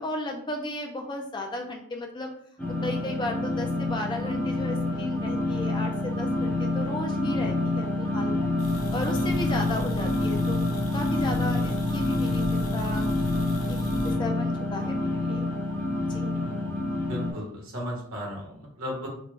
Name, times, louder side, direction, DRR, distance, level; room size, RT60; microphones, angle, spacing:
voice 1, 0.0-2.3 2.8-8.5 8.9-15.5 16.1-16.3, left 1 dB, 20° left, 3 dB, 0.4 m, -35 dB
sound 1, 2.6-17.3, left 2 dB, 5° left, 0.9 m, -27 dB
sound 2, 8.6-14.2, left 1 dB, 80° left, 0.7 m, -33 dB
voice 2, 16.3-19.1, equal, 80° right, -1 dB, 1.3 m, -36 dB
3.9 x 2.2 x 3.1 m, 0.65 s
head